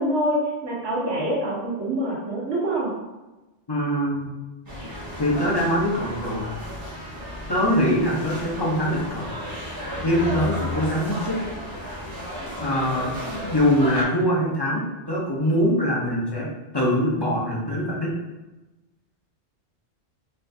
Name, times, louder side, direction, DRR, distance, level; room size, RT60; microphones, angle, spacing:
voice 1, 0.0-2.9, right 1 dB, 85° right, -5 dB, 1.4 m, -25 dB
voice 2, 3.7-4.3 5.2-6.4 7.5-9.3 10.0-11.4 12.6-16.5 16.7-18.1, equal, 25° left, -4 dB, 0.6 m, -23 dB
sound 1, 4.7-14.0, left 1 dB, 20° right, 0.8 m, -33 dB
4.1 x 2.4 x 2.6 m, 1.1 s
omnidirectional pair, 1.2 m